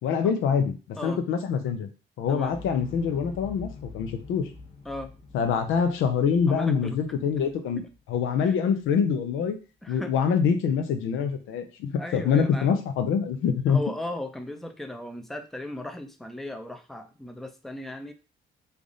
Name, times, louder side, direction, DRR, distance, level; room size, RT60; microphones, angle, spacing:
voice 1, 0.0-1.9 2.2-4.5 5.3-7.8 8.1-9.6 9.9-13.8, left 6 dB, 85° left, 7 dB, 0.6 m, -25 dB
Explosion, 2.4-8.5 8.8-8.9, left 4 dB, 30° left, 0.9 m, -45 dB
voice 2, 6.5-7.0 7.8-7.9 8.4-8.5 9.8-10.2 12.0-12.7 13.7-18.1, left 1 dB, ahead, 7 dB, 0.5 m, -36 dB
3.3 x 2.5 x 3.8 m, 0.33 s
cardioid pair, 90°, 20 cm